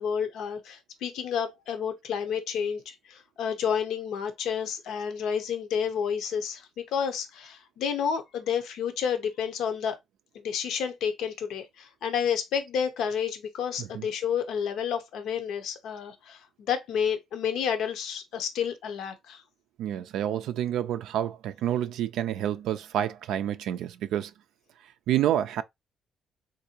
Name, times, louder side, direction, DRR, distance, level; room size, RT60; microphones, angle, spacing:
voice 1, 0.0-10.0 10.3-19.4, left 7 dB, 80° left, 0.7 m, -30 dB
voice 2, 19.8-24.3 25.1-25.6, right 11 dB, 85° right, 0.3 m, -28 dB
3.5 x 2.6 x 2.7 m
cardioid pair, 90°, 0 cm